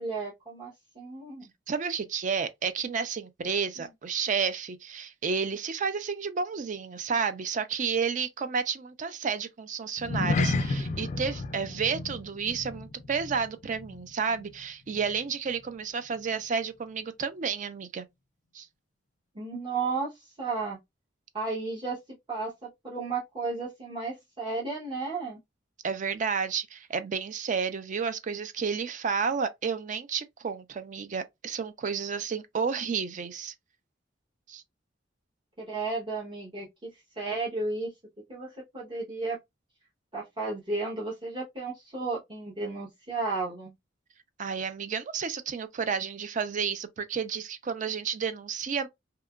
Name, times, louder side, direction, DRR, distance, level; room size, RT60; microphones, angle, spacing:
voice 1, 0.0-1.5 19.3-20.8 21.3-22.0 22.3-25.4 35.6-37.9 38.3-39.4 40.1-43.7, right 3 dB, 25° right, 0.8 m, -33 dB
voice 2, 1.7-18.1 18.5-18.7 25.8-33.5 34.5-34.6 44.4-48.9, right 6 dB, 45° right, 0.4 m, -31 dB
sound 1, 10.0-14.6 14.9-15.2 15.6-15.7, left 2 dB, 40° left, 0.3 m, -32 dB
2.8 x 2.4 x 2.2 m
head